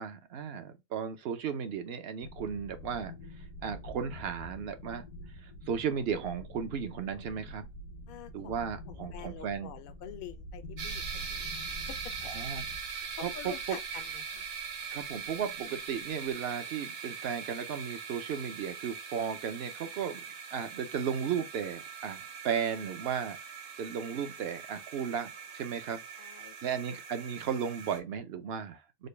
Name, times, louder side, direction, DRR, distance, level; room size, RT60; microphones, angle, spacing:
voice 1, 0.0-3.1 3.6-5.0 5.7-7.6 8.3-9.7 12.3-12.6 13.2-13.8 14.9-20.2 20.5-23.4 23.8-26.0 26.6-29.1, right 7 dB, 60° right, 0.7 m, -35 dB
sound 1, 2.2-12.8, left 1 dB, 85° left, 1.2 m, -47 dB
voice 2, 8.1-11.6 11.9-12.3 12.9-14.4 26.2-26.7, left 9 dB, 60° left, 0.6 m, -47 dB
sound 2, 10.8-28.0, right 6 dB, 85° right, 1.3 m, -41 dB
3.9 x 2.2 x 3.2 m
omnidirectional pair, 1.5 m